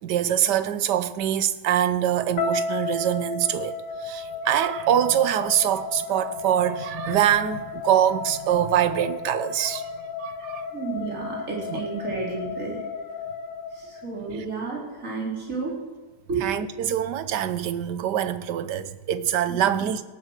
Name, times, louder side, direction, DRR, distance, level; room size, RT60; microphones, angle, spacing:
voice 1, 0.0-9.9 10.2-10.7 11.7-11.8 14.3-14.4 16.4-20.0, right 10 dB, 75° right, 1.4 m, -24 dB
sound 1, 2.4-14.5, left 4 dB, 85° left, 3.2 m, -34 dB
voice 2, 10.7-12.8 13.7-15.7 16.3-16.5 19.5-19.9, right 4 dB, 45° right, 4.3 m, -31 dB
17.5 x 8.6 x 6.5 m
omnidirectional pair, 1.9 m